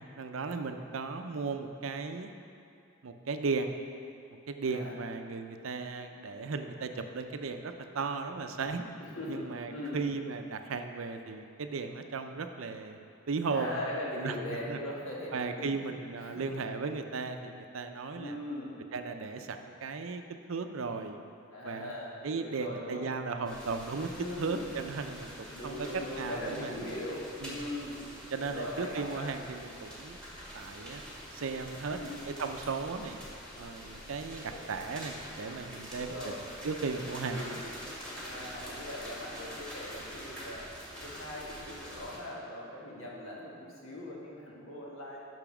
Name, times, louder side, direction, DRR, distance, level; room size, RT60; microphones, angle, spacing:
voice 1, 0.2-2.3 3.0-3.7 4.5-8.9 9.3-13.0 13.3-13.7 14.2-14.8 15.3-18.4 18.9-20.2 20.5-21.2 21.6-21.9 22.2-24.1 24.4-25.9 26.2-26.9 27.4-27.6 28.3-30.2 30.5-31.0 31.3-33.2 33.6-37.6, right 4 dB, 75° right, 7 dB, 0.5 m, -36 dB
voice 2, 4.6-5.0 9.0-10.0 13.5-16.5 18.2-18.8 21.5-23.1 24.1-24.6 25.5-28.0 28.4-29.3 31.8-32.3 34.3-34.6 35.9-36.5 37.2-37.6 38.2-40.7 41.0-45.2, left 1 dB, 70° left, -4 dB, 1.7 m, -40 dB
sound 1, 23.4-42.2, equal, 5° left, 1.8 m, -45 dB
6.9 x 6.2 x 6.0 m, 2.5 s
head